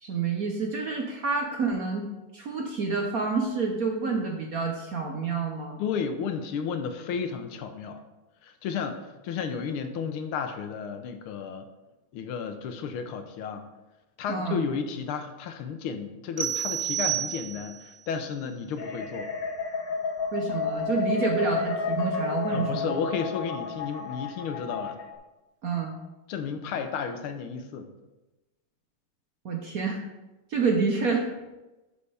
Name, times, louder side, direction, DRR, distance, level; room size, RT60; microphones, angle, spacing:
voice 1, 0.0-5.8 14.3-14.6 20.3-23.1 25.6-25.9 29.4-30.0 30.5-31.3, right 4 dB, 55° right, 1 dB, 1.0 m, -28 dB
voice 2, 5.8-8.0 8.4-11.7 12.1-13.6 14.2-19.3 22.5-25.0 26.3-27.9, left 6 dB, 80° left, 7 dB, 1.6 m, -33 dB
sound 1, 16.4-17.9, right 11 dB, 80° right, 0.7 m, -30 dB
sound 2, 18.8-25.2, left 5 dB, 60° left, 1.5 m, -31 dB
9.7 x 6.7 x 3.4 m, 1.1 s
omnidirectional pair, 2.4 m